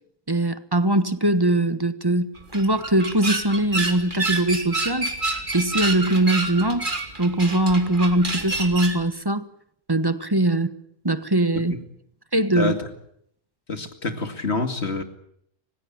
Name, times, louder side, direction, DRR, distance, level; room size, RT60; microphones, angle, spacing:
voice 1, 0.3-5.1 5.5-6.9 7.2-9.4 9.9-10.7 11.0-11.7 12.3-12.7, right 1 dB, 20° right, 1.2 m, -21 dB
sound 1, 2.4-9.0, right 3 dB, 35° right, 2.8 m, -28 dB
voice 2, 12.5-12.9 13.7-15.0, left 3 dB, 55° left, 2.6 m, -27 dB
29.5 x 16.5 x 8.9 m
omnidirectional pair, 1.4 m